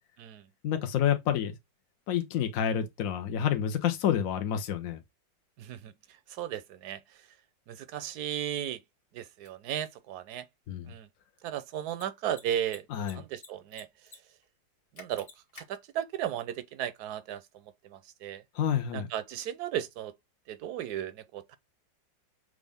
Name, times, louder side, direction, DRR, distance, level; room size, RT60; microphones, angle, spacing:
voice 1, 0.6-1.5 2.1-5.0 10.7-10.8 12.9-13.2 18.5-19.1, left 9 dB, 65° left, 0.9 m, -28 dB
voice 2, 5.6-7.3 7.7-8.8 9.1-10.5 10.8-11.1 11.4-12.9 13.1-13.9 14.9-15.3 15.5-18.4 18.9-20.1 20.5-21.6, right 10 dB, 70° right, 1.0 m, -35 dB
Mechanisms, 9.4-9.5 11.8-12.0 12.3-12.4 12.7-13.5 13.7-14.2 14.4-14.5 15.0-15.6, left 4 dB, 45° left, 1.5 m, -48 dB
6.2 x 2.5 x 3.4 m
omnidirectional pair, 2.0 m